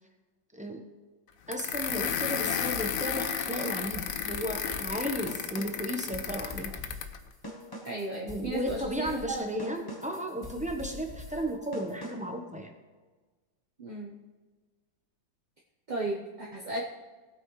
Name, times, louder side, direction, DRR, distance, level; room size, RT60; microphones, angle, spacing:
voice 1, 0.5-0.8 1.5-6.7 8.2-12.7, equal, 10° right, 2 dB, 0.4 m, -34 dB
sound 1, 1.5-7.2, left 7 dB, 65° left, 0.9 m, -33 dB
sound 2, 3.9-12.4, left 2 dB, 15° left, 0.8 m, -44 dB
voice 2, 7.8-9.7 13.8-14.2 15.9-16.8, right 2 dB, 30° right, -3 dB, 0.9 m, -35 dB
18.5 x 8.6 x 3.2 m, 1.3 s
omnidirectional pair, 2.1 m